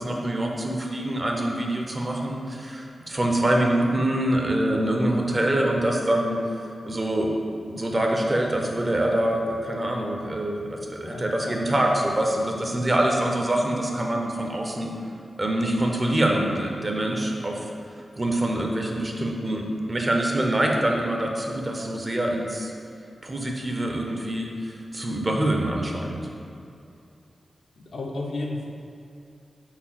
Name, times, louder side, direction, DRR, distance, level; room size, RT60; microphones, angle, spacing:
voice 1, 0.0-6.4 6.9-7.3 7.6-14.9 15.4-17.7 18.2-22.7 23.2-26.3, right 1 dB, 30° right, 1 dB, 0.8 m, -25 dB
voice 2, 11.0-11.6 27.8-28.7, left 2 dB, 70° left, 0 dB, 0.7 m, -33 dB
4.6 x 4.2 x 5.8 m, 2.5 s
wide cardioid pair, 85°, 0 cm